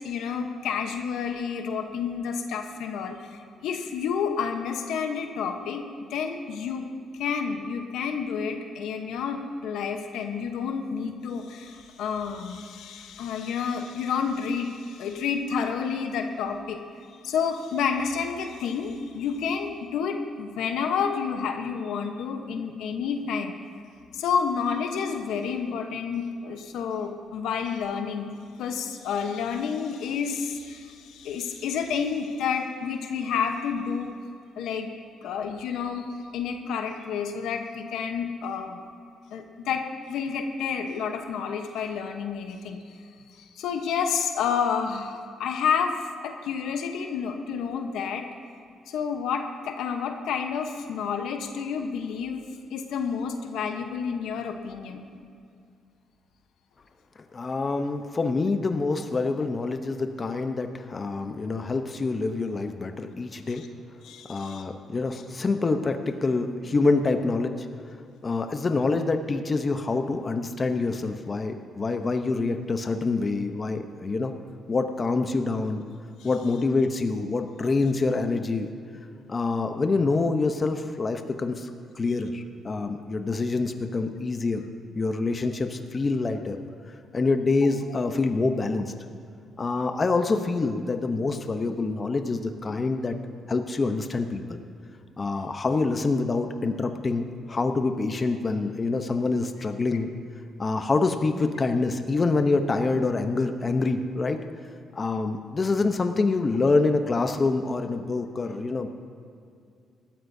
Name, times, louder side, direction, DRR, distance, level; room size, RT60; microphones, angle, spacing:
voice 1, 0.0-5.8 6.1-6.9 7.2-16.8 17.2-23.5 24.1-34.2 34.6-34.9 35.2-38.8 39.3-42.8 43.3-45.9 46.2-48.3 48.9-55.0 63.6-63.7 64.0-64.6 87.9-88.0, left 6 dB, 85° left, 5 dB, 1.0 m, -30 dB
voice 2, 57.3-63.6 64.3-67.7 68.2-74.3 74.7-75.8 76.2-78.7 79.3-81.7 81.9-84.7 84.9-86.6 87.1-88.9 89.6-93.2 93.5-94.6 95.2-100.1 100.6-104.4 104.9-108.9, left 3 dB, 35° left, 6 dB, 0.8 m, -26 dB
19.5 x 13.0 x 2.7 m, 2.4 s
cardioid pair, 90°, 0 cm